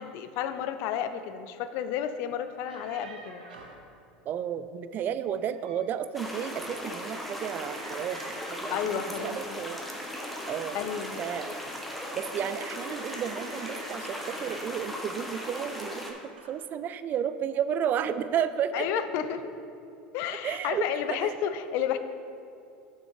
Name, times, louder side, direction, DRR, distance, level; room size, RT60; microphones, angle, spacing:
voice 1, 0.0-3.4 8.7-9.6 10.7-11.2 18.7-19.5 20.1-22.0, left 9 dB, 55° left, 10 dB, 0.5 m, -31 dB
sound 1, 2.5-3.9 5.3-5.9 6.3-6.8 7.7-9.1 10.1-11.8 13.0-14.8 15.7-16.0 16.4-16.6, right 3 dB, 85° right, 0.9 m, -48 dB
voice 2, 4.3-8.3 8.6-9.8 10.5-10.8 11.2-11.6 12.1-16.2 16.5-18.9 20.3-21.4, right 9 dB, 40° right, 13 dB, 0.4 m, -32 dB
sound 2, 6.1-16.1, left 1 dB, ahead, 1.1 m, -37 dB
6.4 x 6.2 x 4.7 m, 2.5 s
hypercardioid pair, 85°, 5 cm